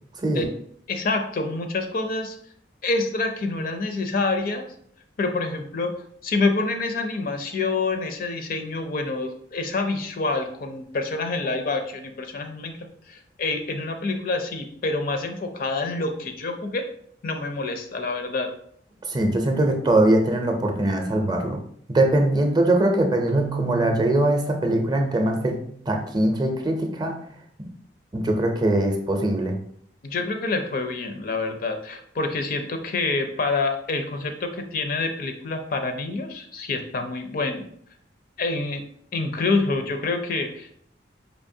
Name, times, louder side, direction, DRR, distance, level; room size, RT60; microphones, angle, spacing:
voice 1, 0.9-2.4 2.8-4.7 5.2-16.9 17.2-18.5 30.0-37.7 38.4-38.8 39.1-40.7, left 3 dB, 55° left, 6 dB, 0.5 m, -27 dB
voice 2, 19.1-21.6 21.9-25.6 25.9-27.1 27.6-27.7 28.1-29.6, right 1 dB, 25° right, 3 dB, 0.5 m, -22 dB
Keyboard (musical), 23.3-26.2, right 6 dB, 80° right, 0.5 m, -34 dB
4.5 x 2.8 x 2.7 m, 0.63 s
head